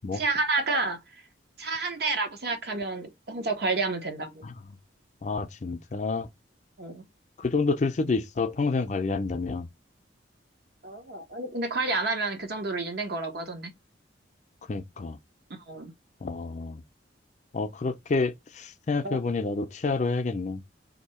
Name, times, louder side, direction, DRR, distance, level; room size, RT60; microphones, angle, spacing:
voice 1, 0.1-1.0 1.6-4.5 6.8-7.0 10.8-13.7 15.7-15.9 19.0-19.2, right 3 dB, 55° right, 0.9 m, -30 dB
voice 2, 5.2-6.3 7.4-9.7 14.7-15.2 16.2-16.8 17.5-20.6, left 3 dB, 40° left, 0.4 m, -28 dB
2.7 x 2.7 x 4.3 m
head